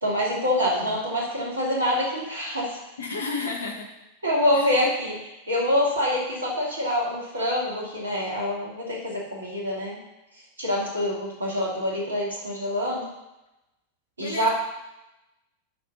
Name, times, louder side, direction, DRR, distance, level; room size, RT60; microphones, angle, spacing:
voice 1, 0.0-2.8 4.2-5.2 5.5-10.0 10.6-13.1 14.2-14.5, left 1 dB, 75° right, -3 dB, 2.5 m, -26 dB
voice 2, 0.6-1.0 3.0-3.9 4.5-4.7 14.2-14.5, left 3 dB, 70° left, 3 dB, 1.3 m, -32 dB
7.6 x 5.2 x 5.5 m, 0.95 s
figure-of-eight pair, 90°, 0 cm